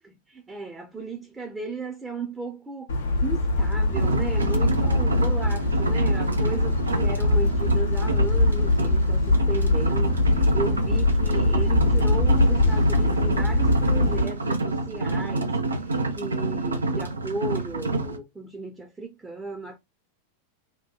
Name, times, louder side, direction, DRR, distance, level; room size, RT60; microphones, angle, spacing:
voice 1, 0.0-2.9 3.2-19.8, right 3 dB, 10° right, 0.7 m, -35 dB
sound 1, 2.9-14.2, left 2 dB, 65° left, 0.7 m, -22 dB
sound 2, 3.9-18.2, right 2 dB, 75° right, 0.5 m, -28 dB
2.9 x 2.2 x 2.3 m
figure-of-eight pair, 90°, 0 cm